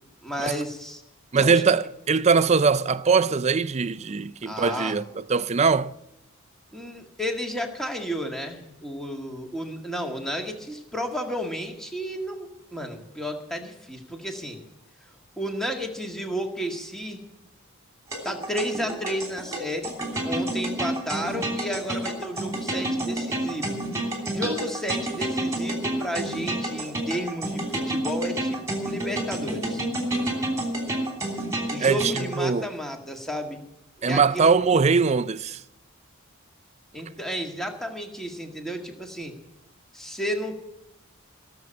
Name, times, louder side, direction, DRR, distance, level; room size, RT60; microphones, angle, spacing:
voice 1, 0.2-1.0 1.4-1.6 4.4-5.0 6.7-14.6 15.4-17.2 18.2-20.0 20.2-23.8 24.3-29.8 31.7-33.6 34.0-34.5 36.9-39.4 39.9-40.6, equal, ahead, 1.8 m, -32 dB
voice 2, 1.3-5.0 5.3-5.9 31.8-32.1 32.4-32.7 34.0-35.6, right 5 dB, 30° right, 0.4 m, -21 dB
sound 1, 18.1-32.4, right 1 dB, 15° right, 3.0 m, -29 dB
19.0 x 7.1 x 8.6 m
head